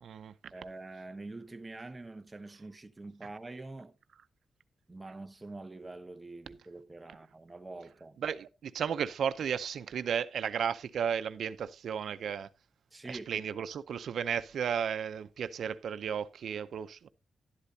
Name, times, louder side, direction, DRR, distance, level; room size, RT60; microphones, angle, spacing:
voice 1, 0.0-0.3 8.2-12.5 13.1-17.1, right 7 dB, 85° right, 0.6 m, -34 dB
voice 2, 0.5-4.0 4.9-8.2 12.9-13.4, right 2 dB, 15° right, 0.8 m, -45 dB
11.5 x 11.5 x 2.7 m
wide cardioid pair, 140°, 0 cm